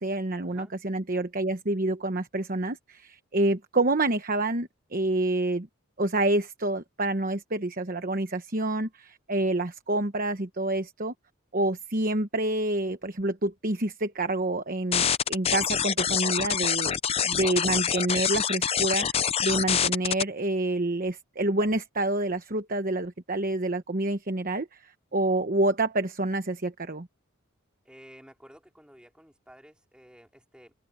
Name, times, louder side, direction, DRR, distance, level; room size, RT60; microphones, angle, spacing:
voice 1, 0.0-5.7 6.0-11.1 11.5-16.9 17.2-27.1, right 2 dB, 40° right, 1.1 m, -28 dB
sound 1, 14.9-20.2, left 8 dB, 30° left, 0.6 m, -26 dB
voice 2, 27.9-30.7, equal, 5° right, 3.3 m, -52 dB
open air
head